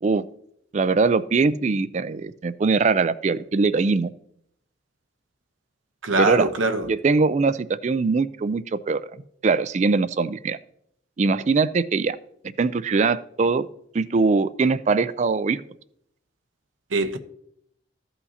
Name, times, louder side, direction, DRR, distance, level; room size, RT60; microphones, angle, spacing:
voice 1, 0.7-4.1 6.2-6.5 6.9-9.1 9.4-10.6 11.2-12.2 12.6-13.7 13.9-15.6, right 4 dB, 35° right, 0.3 m, -22 dB
voice 2, 6.0-6.9 16.9-17.2, right 2 dB, 85° right, 0.8 m, -22 dB
14.5 x 5.7 x 2.8 m
head